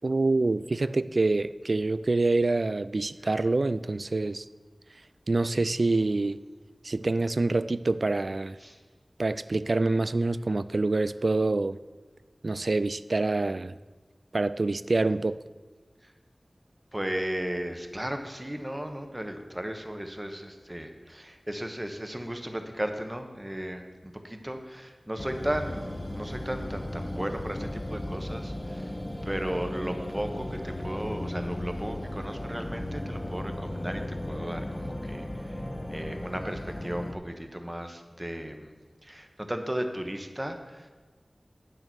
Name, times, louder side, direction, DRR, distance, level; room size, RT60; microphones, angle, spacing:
voice 1, 0.0-4.4 5.3-6.4 6.8-8.6 9.2-11.8 12.4-13.8 14.3-15.4, right 2 dB, 65° right, 15 dB, 0.3 m, -26 dB
voice 2, 16.9-28.9 29.2-35.6 35.9-38.7 39.0-40.9, right 1 dB, 20° right, 6 dB, 1.2 m, -35 dB
sound 1, 25.2-37.1, left 1 dB, 30° left, 0.9 m, -36 dB
8.8 x 6.6 x 6.2 m, 1.4 s
wide cardioid pair, 40°, 0 cm